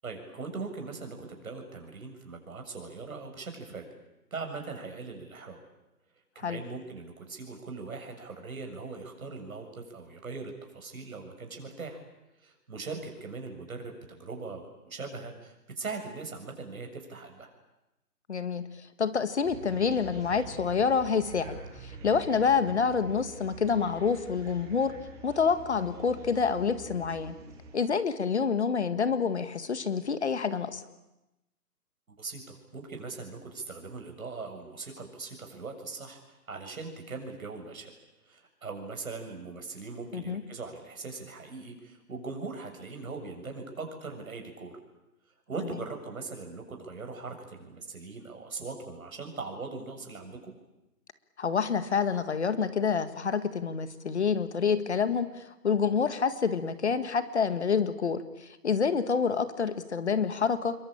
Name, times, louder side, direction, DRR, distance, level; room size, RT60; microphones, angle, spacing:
voice 1, 0.0-3.9 4.3-5.6 6.4-12.0 12.4-17.5 32.1-37.9 38.2-44.7 45.5-50.5, right 4 dB, 60° right, 4 dB, 7.1 m, -40 dB
voice 2, 18.3-18.7 19.0-21.6 21.8-24.9 25.2-27.4 27.7-30.8 40.1-40.4 51.4-60.7, left 6 dB, 45° left, 12 dB, 1.8 m, -27 dB
sound 1, 19.4-27.8, right 3 dB, 5° right, 4.0 m, -46 dB
28.0 x 22.5 x 8.8 m, 0.96 s
hypercardioid pair, 170°, 46 cm